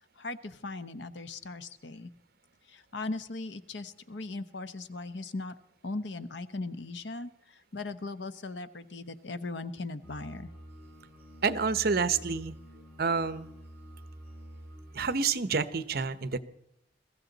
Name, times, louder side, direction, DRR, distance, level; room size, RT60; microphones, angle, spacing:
voice 1, 0.2-2.1 2.7-5.5 5.8-10.5, left 3 dB, 80° left, 12 dB, 1.0 m, -38 dB
sound 1, 10.0-15.1, right 1 dB, 10° right, 5.8 m, -48 dB
voice 2, 11.4-12.5 13.0-13.5 14.9-16.4, right 5 dB, 60° right, 14 dB, 0.9 m, -28 dB
22.5 x 15.0 x 4.0 m, 0.76 s
head